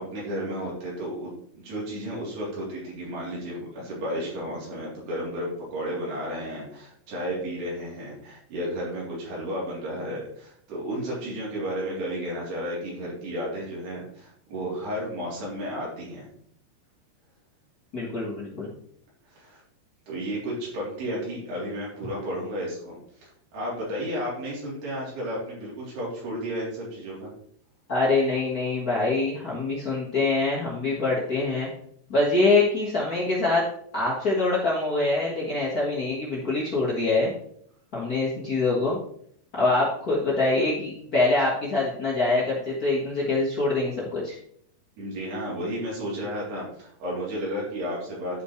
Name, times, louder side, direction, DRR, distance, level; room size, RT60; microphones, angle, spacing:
voice 1, 0.0-16.3 19.3-19.6 20.1-27.3 45.0-48.4, equal, 75° right, -6 dB, 5.4 m, -33 dB
voice 2, 17.9-18.7 27.9-31.7 32.1-33.6 33.9-37.3 37.9-39.0 39.5-44.3, left 3 dB, 85° left, -6 dB, 0.8 m, -24 dB
12.0 x 5.8 x 3.2 m, 0.66 s
omnidirectional pair, 4.7 m